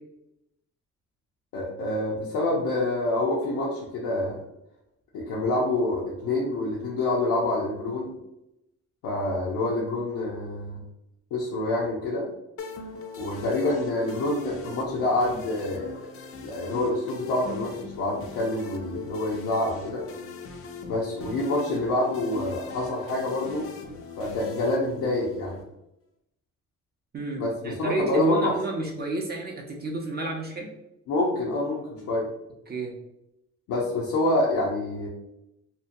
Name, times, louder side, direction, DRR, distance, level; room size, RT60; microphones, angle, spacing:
voice 1, 1.5-4.4 5.1-8.1 9.0-10.8 11.3-12.3 13.2-15.9 16.4-20.0 20.9-23.7 24.2-25.6 27.4-28.5 31.1-32.3 33.7-35.1, left 2 dB, 90° left, -5 dB, 0.6 m, -27 dB
sound 1, 12.6-25.6, left 4 dB, 50° left, 0.4 m, -40 dB
voice 2, 27.1-30.7 32.7-32.9, right 2 dB, 35° right, -1 dB, 0.5 m, -31 dB
2.6 x 2.2 x 2.5 m, 0.88 s
cardioid pair, 90°, 30 cm